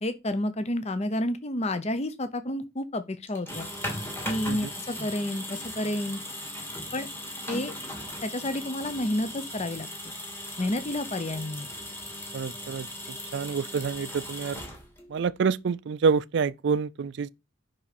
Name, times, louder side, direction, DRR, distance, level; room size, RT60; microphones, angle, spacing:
voice 1, 0.0-3.7 4.3-6.2 6.9-7.1 7.5-7.7 8.2-10.1 10.6-11.7, left 1 dB, 35° left, 0.7 m, -30 dB
sound 1, 3.3-15.2, left 1 dB, 10° left, 2.1 m, -38 dB
voice 2, 12.3-12.9 13.3-14.6 15.1-17.3, right 5 dB, 60° right, 0.4 m, -27 dB
9.8 x 5.6 x 4.1 m
head